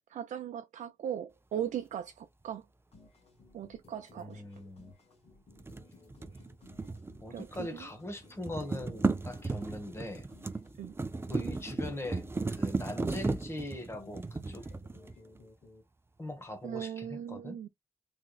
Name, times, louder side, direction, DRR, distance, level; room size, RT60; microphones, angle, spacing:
voice 1, 0.0-2.6 3.5-4.4 6.8-6.9 7.3-7.9 10.8-10.9 16.6-17.7, right 9 dB, 90° right, 0.4 m, -39 dB
sound 1, 2.9-15.8, left 3 dB, 55° left, 1.7 m, -59 dB
voice 2, 4.1-4.9 7.2-10.3 11.3-12.2 12.5-14.6 16.2-17.6, left 1 dB, 20° left, 1.3 m, -41 dB
sound 2, 5.6-7.8 8.1-15.4, right 3 dB, 20° right, 0.5 m, -35 dB
3.5 x 3.2 x 2.3 m
wide cardioid pair, 120°, 12 cm